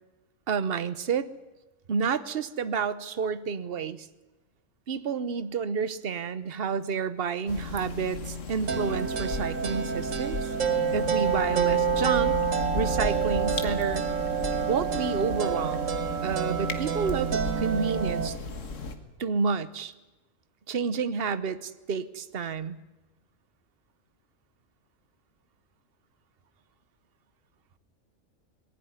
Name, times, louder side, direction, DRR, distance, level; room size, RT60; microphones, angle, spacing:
voice 1, 0.5-1.3 1.9-4.1 4.9-10.5 10.9-12.4 12.7-14.1 14.7-15.8 16.2-18.4 19.2-19.9 20.7-22.8, right 6 dB, 50° right, 14 dB, 1.1 m, -30 dB
sound 1, 7.5-19.0, left 3 dB, 70° left, 2.0 m, -36 dB
sound 2, 8.7-18.3, right 7 dB, 75° right, 1.6 m, -28 dB
20.5 x 15.5 x 9.6 m, 1.1 s
omnidirectional pair, 1.4 m